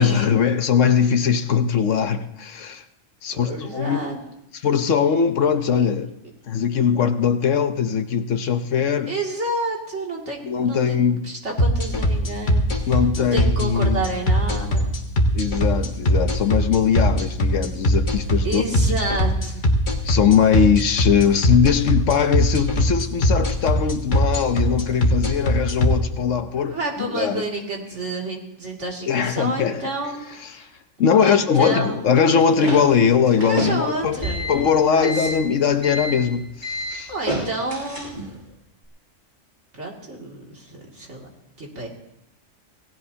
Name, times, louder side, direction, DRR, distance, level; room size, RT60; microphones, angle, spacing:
voice 1, 0.0-2.8 3.2-4.0 4.6-6.1 6.5-9.1 10.4-11.3 12.8-14.0 15.3-19.0 20.0-26.7 27.0-27.4 29.1-29.8 30.6-30.7 31.0-34.2 34.5-37.1, left 7 dB, 75° left, 1.2 m, -20 dB
voice 2, 3.3-4.2 9.1-10.4 10.7-11.0 11.2-15.0 18.4-19.7 26.6-30.7 31.2-32.1 33.4-35.3 37.1-38.4 39.7-41.2 41.6-41.9, right 2 dB, 65° right, 2.9 m, -30 dB
sound 1, 11.6-25.9, equal, 40° left, 1.6 m, -19 dB
sound 2, 32.2-38.4, equal, 35° right, 8.2 m, -29 dB
27.5 x 17.5 x 2.8 m
omnidirectional pair, 1.3 m